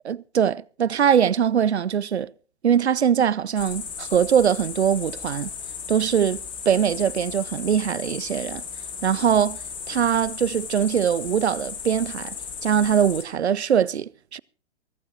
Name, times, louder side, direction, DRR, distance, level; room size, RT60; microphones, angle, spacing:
voice 1, 0.0-2.3 2.6-5.5 5.9-6.4 6.7-8.6 9.0-9.6 9.9-12.4 12.6-14.4, right 8 dB, 70° right, 0.6 m, -22 dB
sound 1, 3.6-13.2, left 6 dB, 15° left, 2.5 m, -36 dB
23.0 x 14.0 x 2.8 m
figure-of-eight pair, 120°, 34 cm